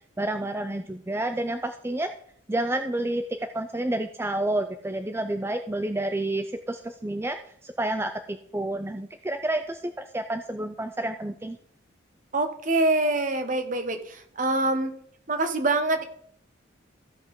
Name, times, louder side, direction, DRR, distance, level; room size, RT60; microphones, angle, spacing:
voice 1, 0.2-2.1 2.5-11.6, right 1 dB, 15° right, 7 dB, 0.4 m, -29 dB
voice 2, 12.3-15.0 15.3-16.0, right 2 dB, 45° right, 7 dB, 1.2 m, -25 dB
15.0 x 5.8 x 3.7 m, 0.63 s
head